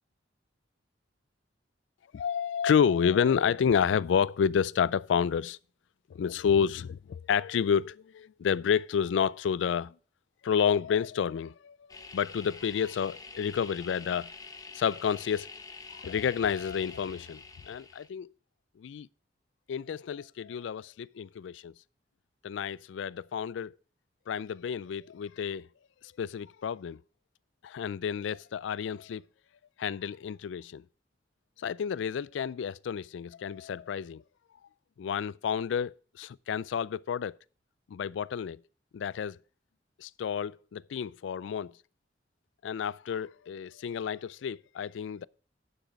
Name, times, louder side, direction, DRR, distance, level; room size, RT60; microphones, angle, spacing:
voice 1, 2.1-5.6 6.1-9.9 10.4-11.8 12.1-14.3 14.7-15.5 15.9-18.3 18.8-19.1 19.7-21.7 22.4-23.7 24.3-25.7 26.2-27.0 27.6-29.2 29.8-30.8 31.6-34.2 35.0-37.3 37.9-38.6 38.9-39.4 40.0-41.7 42.6-45.3, left 7 dB, 85° left, 0.3 m, -30 dB
sound 1, 11.9-18.1, left 4 dB, 20° left, 0.8 m, -47 dB
10.0 x 6.2 x 5.2 m
head